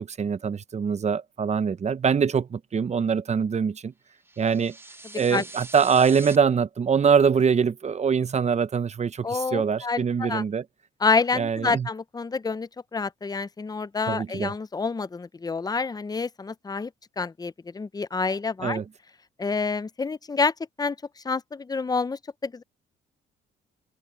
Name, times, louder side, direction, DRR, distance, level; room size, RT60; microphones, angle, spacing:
voice 1, 0.0-3.9 4.4-4.8 5.1-10.6 11.3-11.9 14.1-14.5 18.6-18.9, right 6 dB, 35° right, 0.8 m, -23 dB
sound 1, 4.2-6.4, right 2 dB, 10° right, 1.3 m, -43 dB
voice 2, 9.2-10.4 11.0-16.9 17.2-18.8 19.4-20.5 20.8-22.6, left 4 dB, 20° left, 0.6 m, -28 dB
cardioid pair, 90°, 20 cm